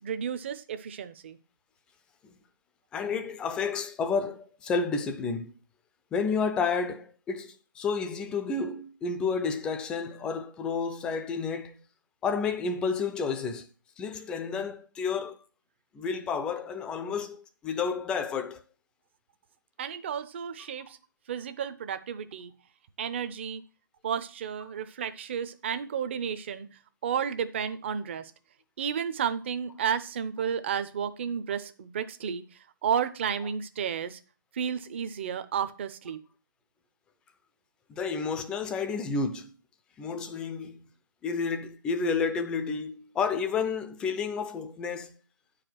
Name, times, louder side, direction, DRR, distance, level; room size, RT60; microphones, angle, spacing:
voice 1, 0.0-1.4 19.8-21.0 21.3-22.5 23.0-23.6 24.0-26.7 27.0-28.3 28.8-32.4 32.8-34.2 34.5-36.2, right 8 dB, 35° right, 0.7 m, -32 dB
voice 2, 2.9-5.5 6.1-11.8 12.2-13.7 14.0-15.4 15.9-18.6 37.9-39.5 40.0-40.8 41.2-45.1, left 5 dB, 10° left, 0.5 m, -30 dB
8.8 x 5.0 x 6.1 m
figure-of-eight pair, 150°, 11 cm